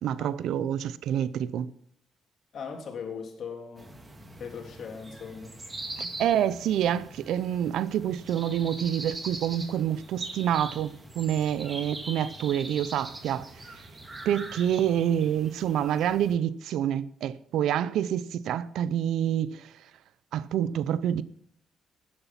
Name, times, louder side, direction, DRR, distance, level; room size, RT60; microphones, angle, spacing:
voice 1, 0.0-1.7 6.0-13.5 14.3-19.7 20.3-21.2, right 10 dB, 80° right, 0.7 m, -27 dB
voice 2, 2.5-3.9 4.4-5.6, left 6 dB, 60° left, 3.3 m, -39 dB
sound 1, 3.8-16.4, right 2 dB, 20° right, 2.5 m, -42 dB
13.0 x 9.8 x 5.8 m
cardioid pair, 90°, 0 cm